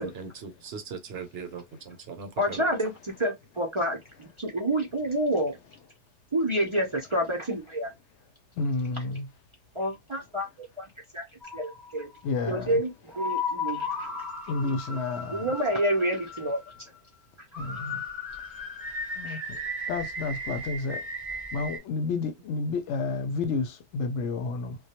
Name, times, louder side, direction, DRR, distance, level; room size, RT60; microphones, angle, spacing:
voice 1, 0.0-2.6, right 5 dB, 65° right, 0.8 m, -39 dB
voice 2, 2.4-5.6 6.3-7.9 9.7-10.5 10.8-10.9 11.1-11.2 11.5-12.1 12.4-14.1 15.3-16.6 19.2-19.4, right 1 dB, 40° right, 0.4 m, -28 dB
voice 3, 8.6-9.3 12.2-12.7 14.5-15.5 17.6-18.0 19.2-19.4 19.9-21.0 21.5-24.8, left 4 dB, 80° left, 0.9 m, -30 dB
sound 1, 11.4-12.2 13.1-17.1 17.5-21.8, left 2 dB, ahead, 0.8 m, -35 dB
2.2 x 2.2 x 2.8 m
omnidirectional pair, 1.2 m